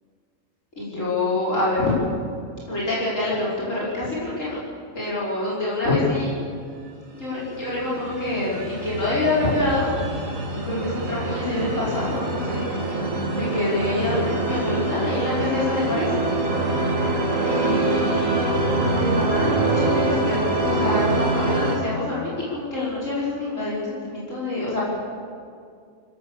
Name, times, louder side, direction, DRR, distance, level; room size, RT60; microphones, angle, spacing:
voice 1, 0.8-1.9 2.7-4.6 5.0-6.3 7.2-10.0 10.5-12.6 13.3-16.1 17.5-18.5 18.7-24.8, left 2 dB, 70° left, -7 dB, 5.5 m, -26 dB
sound 1, 7.4-21.8, right 2 dB, 80° right, 2.7 m, -25 dB
24.5 x 16.0 x 7.2 m, 2.2 s
omnidirectional pair, 1.4 m